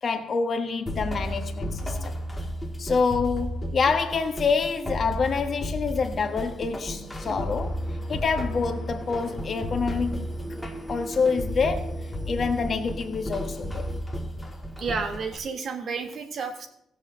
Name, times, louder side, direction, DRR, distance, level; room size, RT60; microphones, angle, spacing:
voice 1, 0.0-2.1 2.8-7.8 8.1-10.3 10.9-12.0 12.3-13.9, left 5 dB, 45° left, 1.3 m, -27 dB
sound 1, 0.9-15.4, equal, 10° left, 1.6 m, -33 dB
sound 2, 5.6-14.0, right 1 dB, 10° right, 1.6 m, -42 dB
voice 2, 14.8-16.7, right 5 dB, 60° right, 1.5 m, -31 dB
16.0 x 7.1 x 3.8 m
cardioid pair, 90°, 0 cm